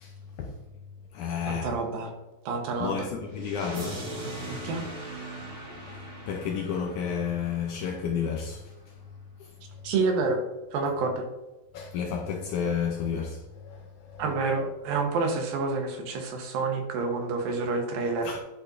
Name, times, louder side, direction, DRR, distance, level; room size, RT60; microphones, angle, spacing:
voice 1, 0.0-0.6 1.1-1.7 2.8-4.1 5.7-9.0 9.4-9.8 11.7-14.3 14.5-14.7 18.2-18.4, left 7 dB, 80° left, 1.8 m, -32 dB
voice 2, 1.5-2.1 2.5-3.0 4.6-4.8 9.8-10.4 10.7-11.2 14.2-18.3, right 4 dB, 80° right, 2.8 m, -28 dB
sound 1, 3.3-8.3, right 1 dB, 40° right, 2.7 m, -40 dB
10.0 x 5.5 x 2.6 m
omnidirectional pair, 4.1 m